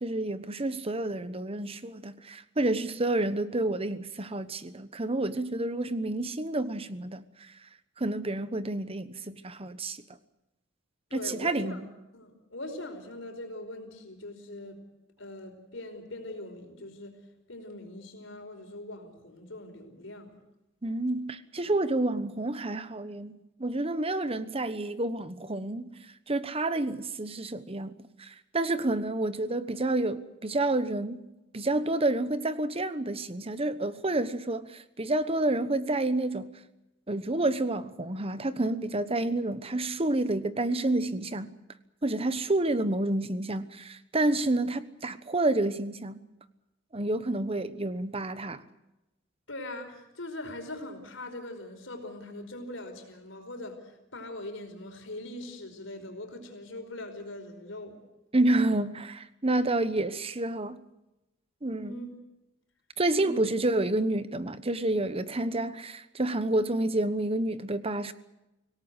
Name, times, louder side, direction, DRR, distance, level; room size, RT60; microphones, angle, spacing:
voice 1, 0.0-7.5 8.0-10.0 11.1-11.8 20.8-25.9 26.3-31.2 31.5-36.6 37.1-41.5 42.0-46.2 46.9-48.6 58.3-60.8 61.6-62.1 63.0-68.1, right 2 dB, 30° right, 1.1 m, -29 dB
voice 2, 11.1-11.8 12.1-14.8 15.2-17.2 17.5-20.4 21.6-21.7 49.5-58.0 61.8-62.1 63.2-63.4, left 1 dB, 80° left, 4.9 m, -41 dB
25.5 x 18.0 x 8.1 m
head